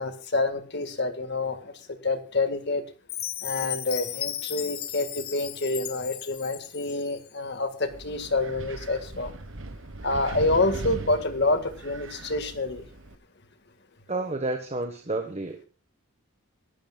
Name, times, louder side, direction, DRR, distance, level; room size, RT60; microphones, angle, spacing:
voice 1, 0.0-1.6 2.0-2.8 3.4-9.3 10.0-12.8, left 2 dB, 50° left, 8 dB, 1.8 m, -27 dB
Chime, 3.1-7.2, left 12 dB, 75° left, 1.5 m, -35 dB
Wind, 7.9-13.1, right 2 dB, 60° right, 1.3 m, -39 dB
voice 2, 14.1-15.7, right 2 dB, 30° right, 6 dB, 1.3 m, -30 dB
23.5 x 12.0 x 2.4 m, 0.36 s
head